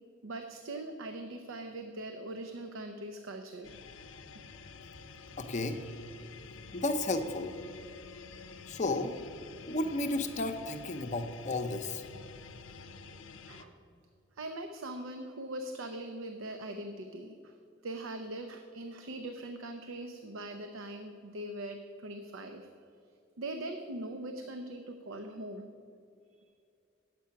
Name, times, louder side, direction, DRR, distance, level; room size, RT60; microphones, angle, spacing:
voice 1, 0.2-3.7 13.5-13.8 14.3-17.5 17.8-22.7 23.4-25.7, right 1 dB, 90° right, 6 dB, 0.6 m, -41 dB
sound 1, 3.6-13.6, left 4 dB, 80° left, 0.6 m, -49 dB
voice 2, 5.4-5.8 6.7-7.5 8.7-9.1 9.7-12.0, left 2 dB, 35° left, 7 dB, 0.6 m, -33 dB
9.4 x 7.6 x 5.7 m, 2.5 s
head